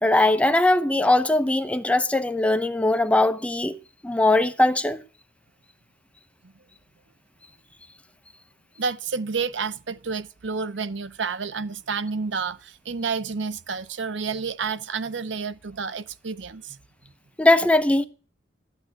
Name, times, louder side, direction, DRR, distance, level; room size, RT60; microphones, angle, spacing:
voice 1, 0.0-3.8 4.0-5.0 17.4-18.1, left 2 dB, 5° left, 0.8 m, -20 dB
voice 2, 8.8-16.8, right 5 dB, 70° right, 0.8 m, -30 dB
12.5 x 9.0 x 10.0 m
head